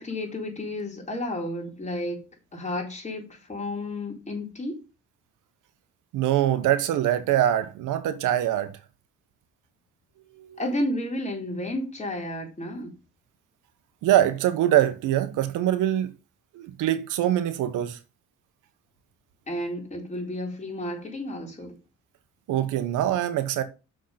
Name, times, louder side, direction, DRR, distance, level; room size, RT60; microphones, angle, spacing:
voice 1, 0.0-2.3 2.5-4.8 10.6-12.9 19.5-21.8, left 1 dB, 25° left, 4.4 m, -32 dB
voice 2, 6.1-8.7 10.4-10.6 14.0-16.1 16.5-18.0 22.5-23.6, right 12 dB, 90° right, 1.1 m, -23 dB
6.6 x 6.5 x 5.7 m
cardioid pair, 90°, 30 cm